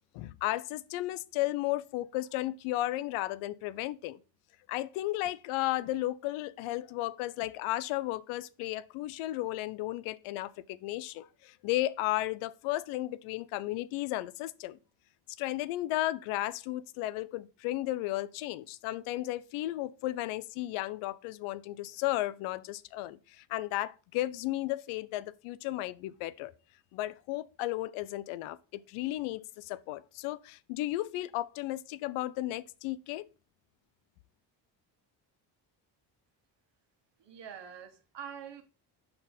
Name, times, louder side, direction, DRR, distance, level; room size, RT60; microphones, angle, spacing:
voice 1, 0.1-4.2 4.7-14.8 15.4-23.2 23.5-26.5 26.9-33.2, left 16 dB, 80° left, 0.6 m, -34 dB
voice 2, 37.2-38.6, right 8 dB, 60° right, 1.4 m, -45 dB
5.4 x 4.4 x 4.0 m
supercardioid pair, 60°, 49 cm